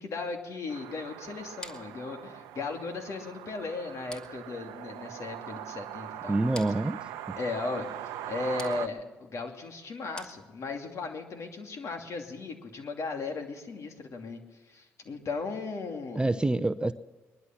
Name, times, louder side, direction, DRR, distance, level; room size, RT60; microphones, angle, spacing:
voice 1, 0.0-6.4 7.4-7.9 8.2-14.4 14.7-16.2, left 3 dB, 60° left, 4 dB, 2.7 m, -36 dB
sound 1, 0.7-8.9, right 12 dB, 90° right, 0.8 m, -41 dB
sound 2, 1.6-10.9, left 1 dB, 15° left, 1.9 m, -51 dB
voice 2, 6.3-7.0 16.2-16.9, right 2 dB, 15° right, 11 dB, 0.7 m, -26 dB
21.5 x 11.5 x 6.0 m, 1.3 s
supercardioid pair, 60°, 6 cm